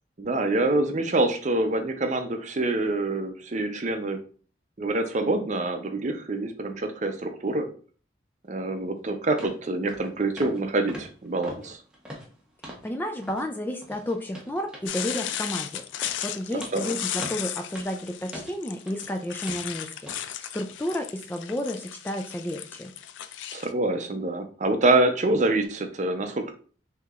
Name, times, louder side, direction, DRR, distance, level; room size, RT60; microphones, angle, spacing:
voice 1, 0.2-4.2 4.8-7.7 8.5-11.8 16.7-16.9 23.5-26.5, right 2 dB, 40° right, 6 dB, 0.6 m, -26 dB
sound 1, 8.8-8.9 9.4-9.6 9.9-10.1 10.4-10.6 10.9-12.9 13.2-13.5 13.8-19.1 19.5-19.7 20.1-20.2 20.7-20.8, equal, 5° right, 0.8 m, -42 dB
voice 2, 12.8-22.9, left 1 dB, 10° left, 4 dB, 0.3 m, -32 dB
sound 2, 14.9-23.7, left 10 dB, 90° left, 0.4 m, -35 dB
6.1 x 2.8 x 2.4 m, 0.41 s
head